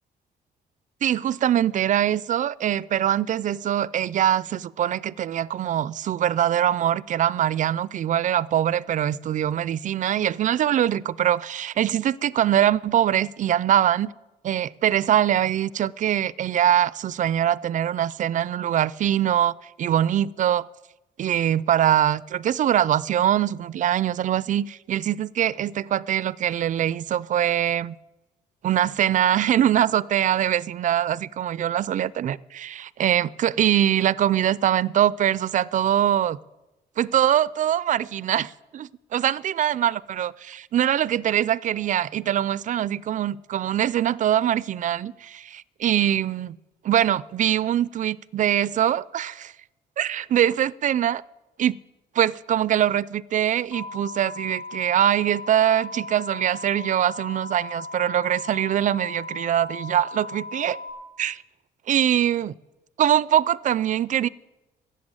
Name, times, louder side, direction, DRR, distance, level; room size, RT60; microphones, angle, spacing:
voice 1, 1.0-14.1 14.4-20.6 21.2-28.0 28.6-36.4 37.0-46.6 46.8-49.5 50.0-51.2 51.6-51.8 52.2-60.8 61.2-61.4 61.9-62.5 63.0-64.3, right 11 dB, 50° right, 0.4 m, -23 dB
sound 1, 53.7-60.9, left 3 dB, 70° left, 4.7 m, -37 dB
14.0 x 8.0 x 8.8 m
cardioid pair, 110°, 17 cm